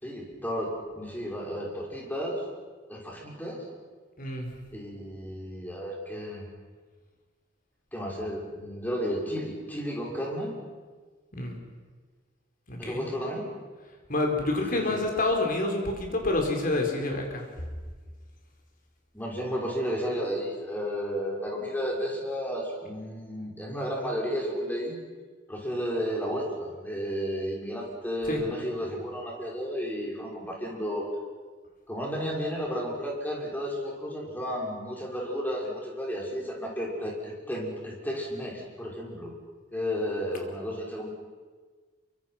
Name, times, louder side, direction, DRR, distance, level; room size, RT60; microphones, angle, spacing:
voice 1, 0.0-2.4 2.9-3.7 4.7-6.4 7.9-10.6 12.8-13.4 14.7-15.0 19.1-25.0 25.5-31.0 31.9-39.3 39.7-41.1, equal, 10° left, -2 dB, 5.8 m, -33 dB
voice 2, 4.2-4.5 11.3-11.6 12.7-13.0 14.1-17.4 28.3-28.4, left 2 dB, 45° left, 2 dB, 4.7 m, -28 dB
27.0 x 24.5 x 5.9 m, 1.4 s
head